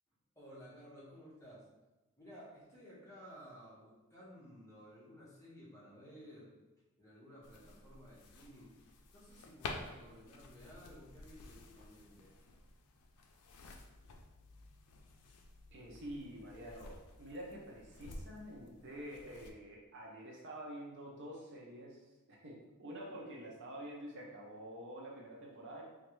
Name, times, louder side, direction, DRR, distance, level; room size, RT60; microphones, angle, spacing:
voice 1, 0.3-1.6 2.2-6.5 7.0-8.8 9.1-12.3, equal, 15° left, -7 dB, 0.9 m, -55 dB
sound 1, 7.4-19.5, left 3 dB, 85° left, 0.4 m, -52 dB
voice 2, 15.7-22.0 22.3-25.8, equal, 55° right, -2 dB, 0.6 m, -48 dB
3.0 x 2.4 x 3.0 m, 1.1 s
head